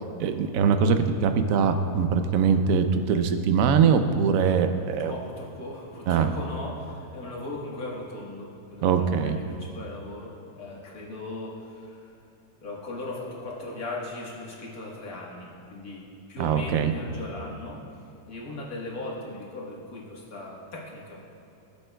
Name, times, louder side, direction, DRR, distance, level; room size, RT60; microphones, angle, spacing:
voice 1, 0.2-5.1 6.1-6.3 8.8-9.4 16.4-16.9, right 6 dB, 65° right, 7 dB, 0.9 m, -22 dB
voice 2, 5.0-12.2 12.6-16.0 16.3-17.8 18.3-21.2, left 2 dB, 60° left, -3 dB, 2.0 m, -38 dB
19.0 x 7.5 x 2.3 m, 2.7 s
omnidirectional pair, 1.8 m